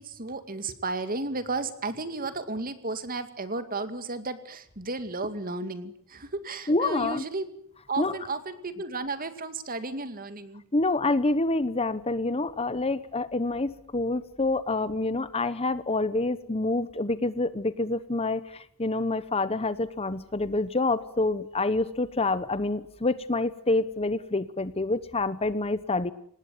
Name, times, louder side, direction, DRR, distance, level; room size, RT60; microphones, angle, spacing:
voice 1, 0.0-7.5 7.9-10.6, right 3 dB, 40° right, 10 dB, 2.3 m, -33 dB
voice 2, 6.7-7.2 8.0-8.1 10.7-26.1, left 2 dB, 25° left, 15 dB, 1.0 m, -27 dB
26.0 x 19.5 x 9.2 m, 0.64 s
head